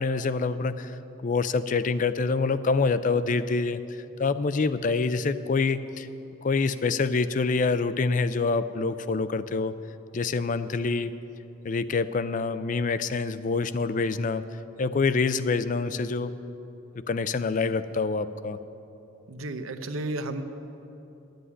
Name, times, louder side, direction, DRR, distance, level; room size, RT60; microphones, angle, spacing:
voice 1, 0.0-6.1 6.4-9.7 10.1-11.1 11.6-14.4 14.8-16.3 17.1-18.6, left 4 dB, 40° left, 13 dB, 0.4 m, -26 dB
voice 2, 19.3-20.4, right 2 dB, 85° right, 9 dB, 0.8 m, -32 dB
11.5 x 7.9 x 9.7 m, 2.9 s
head